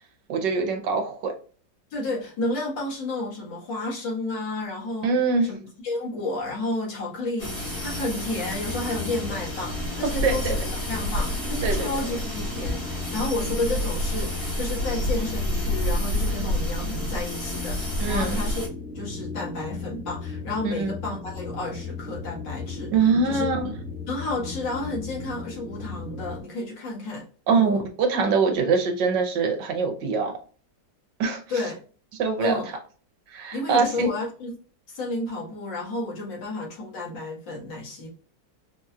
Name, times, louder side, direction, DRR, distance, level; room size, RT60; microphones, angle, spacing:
voice 1, 0.3-1.3 5.0-5.5 10.0-10.6 11.6-11.9 18.0-18.4 20.6-20.9 22.9-23.7 27.5-30.3 31.2-31.4 32.2-32.5 33.3-34.1, right 4 dB, 75° right, 4 dB, 1.6 m, -23 dB
voice 2, 1.9-5.1 5.4-5.6 5.8-22.9 23.2-23.5 24.1-27.8 31.5-31.7 32.4-32.7 33.5-34.5 34.9-38.1, left 2 dB, 85° left, -4 dB, 2.4 m, -31 dB
sound 1, 7.4-18.7, left 1 dB, 55° left, 2.2 m, -29 dB
sound 2, 7.4-26.4, left 4 dB, ahead, 1.3 m, -36 dB
5.2 x 2.9 x 2.4 m, 0.39 s
omnidirectional pair, 2.0 m